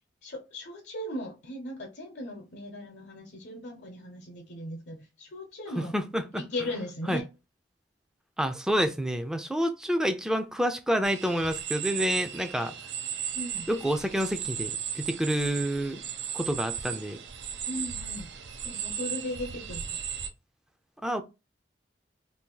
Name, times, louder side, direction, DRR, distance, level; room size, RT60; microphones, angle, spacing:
voice 1, 0.2-5.9 6.3-7.2 13.3-13.7 17.6-18.3 18.6-20.0, left 1 dB, 80° left, 0.8 m, -37 dB
voice 2, 5.8-6.4 7.1-7.2 8.4-12.7 13.7-16.0 16.3-17.2 21.0-21.2, equal, 5° right, 0.4 m, -28 dB
sound 1, 11.0-20.3, right 8 dB, 90° right, 0.5 m, -36 dB
2.7 x 2.5 x 3.7 m
head